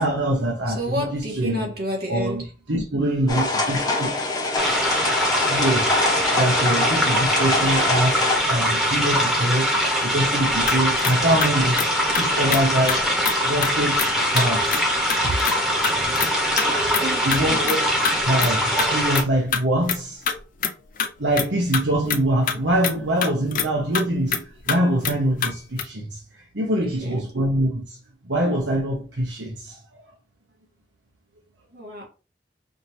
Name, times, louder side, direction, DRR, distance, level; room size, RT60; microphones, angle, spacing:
voice 1, 0.0-1.7 2.1-4.1 5.5-6.0 6.4-9.8 10.0-11.8 12.1-13.1 13.4-14.8 15.2-15.3 16.0-16.2 17.2-17.8 18.2-20.2 21.2-28.0 28.2-29.8, right 1 dB, 85° right, 1.1 m, -24 dB
voice 2, 0.7-2.5 16.6-17.7 26.8-27.3 31.7-32.0, equal, 60° right, 1.7 m, -31 dB
sound 1, 3.3-8.4, left 2 dB, 20° left, 0.9 m, -24 dB
sound 2, 4.5-19.2, equal, 5° right, 1.0 m, -22 dB
sound 3, 10.7-12.2 12.5-12.6 12.9-13.0 13.3-13.4 13.6-13.7 14.0-14.1 14.4-14.8 15.1-15.6 15.8-16.3 16.6-16.7 16.9-17.4 17.7-17.8 18.0-18.1 18.4-18.5 18.8-18.9 19.1-19.6 19.9-20.0 20.3-21.1 21.4-21.5 21.7-22.6 22.8-22.9 23.2-23.7 23.9-24.0 24.3-24.4 24.7-24.8 25.0-25.2 25.4-25.5 25.8-25.9, left 6 dB, 50° left, 0.5 m, -25 dB
5.1 x 2.7 x 3.0 m
head